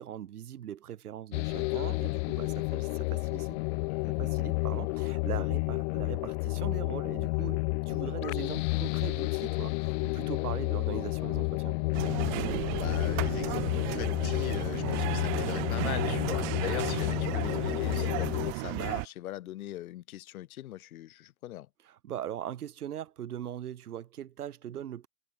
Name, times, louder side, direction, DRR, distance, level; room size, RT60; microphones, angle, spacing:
voice 1, 0.0-3.6 4.1-11.8 21.8-25.1, right 10 dB, 75° right, 4.5 m, -40 dB
sound 1, 1.3-18.5, left 28 dB, 45° left, 0.6 m, -31 dB
sound 2, 11.9-19.1, right 29 dB, 55° right, 4.5 m, -34 dB
voice 2, 12.7-21.7, left 14 dB, 65° left, 6.0 m, -41 dB
hypercardioid pair, 95°, 45 cm